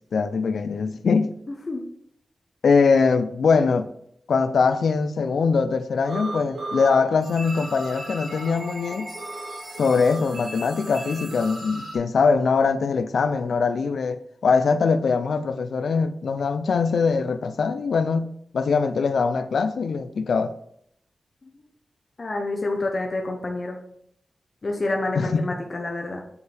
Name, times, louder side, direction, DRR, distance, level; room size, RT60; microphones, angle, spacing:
voice 1, 0.1-1.3 2.6-3.9 4.3-9.1 9.8-20.5 25.2-25.4, left 5 dB, 85° left, 0.4 m, -22 dB
sound 1, 6.1-6.9 7.2-12.0, right 2 dB, 60° right, 3.3 m, -35 dB
voice 2, 22.2-23.8 24.6-26.2, left 2 dB, 40° left, 0.9 m, -28 dB
6.9 x 6.6 x 3.4 m
wide cardioid pair, 130°, 0 cm